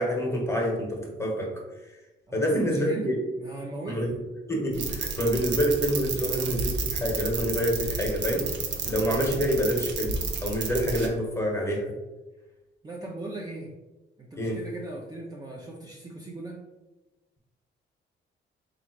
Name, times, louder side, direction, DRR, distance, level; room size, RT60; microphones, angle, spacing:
voice 1, 0.0-2.0 2.3-3.1 3.9-4.1 4.5-8.6 8.8-11.9 14.4-14.6, equal, 15° left, 0 dB, 1.2 m, -27 dB
voice 2, 2.3-3.1 3.4-4.1 12.8-13.7 14.2-16.6, right 2 dB, 20° right, -3 dB, 0.7 m, -39 dB
sound 1, 4.7-11.1, right 4 dB, 65° right, 0.7 m, -31 dB
3.5 x 2.5 x 4.4 m, 1.1 s
cardioid pair, 90°, 20 cm